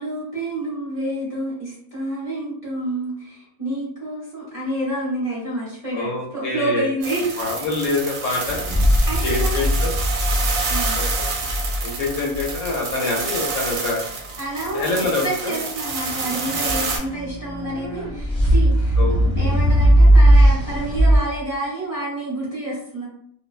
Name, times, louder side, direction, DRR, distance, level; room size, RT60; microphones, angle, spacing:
voice 1, 0.0-7.3 9.1-9.7 10.7-11.0 14.4-19.0 19.4-23.0, right 1 dB, 30° right, -8 dB, 0.8 m, -28 dB
voice 2, 5.9-6.9 7.4-8.6 9.2-9.9 10.9-11.0 11.8-14.0 14.7-15.5 16.6-16.8 19.0-19.5, left 3 dB, 70° left, -1 dB, 0.9 m, -25 dB
sound 1, 7.0-17.0, right 4 dB, 75° right, 1.0 m, -28 dB
sound 2, 8.5-12.5 15.8-21.2, equal, 40° left, 0.4 m, -18 dB
2.5 x 2.1 x 2.4 m, 0.68 s
omnidirectional pair, 1.4 m